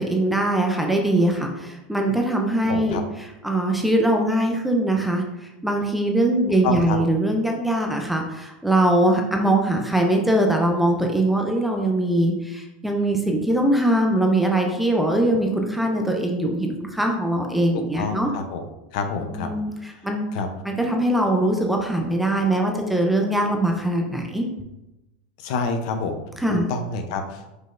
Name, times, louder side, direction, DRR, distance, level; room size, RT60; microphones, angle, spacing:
voice 1, 0.0-3.0 3.4-18.3 19.3-20.3 20.6-24.5 26.4-26.7, right 1 dB, ahead, 1 dB, 0.4 m, -22 dB
voice 2, 2.7-3.0 6.6-7.0 17.7-18.6 18.9-19.5 20.3-20.5 25.4-26.2 26.7-27.6, left 4 dB, 55° left, 6 dB, 0.6 m, -27 dB
5.2 x 3.9 x 2.5 m, 0.97 s
supercardioid pair, 165°, 5 cm